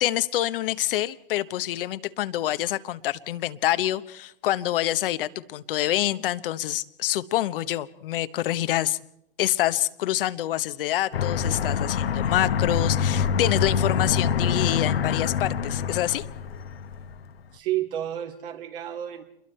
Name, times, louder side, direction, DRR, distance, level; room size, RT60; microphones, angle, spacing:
voice 1, 0.0-9.0 9.4-16.2, left 13 dB, 65° left, 12 dB, 1.0 m, -26 dB
Aircraft, 11.1-17.2, left 7 dB, 85° left, 1.2 m, -25 dB
voice 2, 17.5-19.2, right 12 dB, 65° right, 2 dB, 3.6 m, -30 dB
28.5 x 22.0 x 4.4 m, 0.80 s
hypercardioid pair, 105°, 29 cm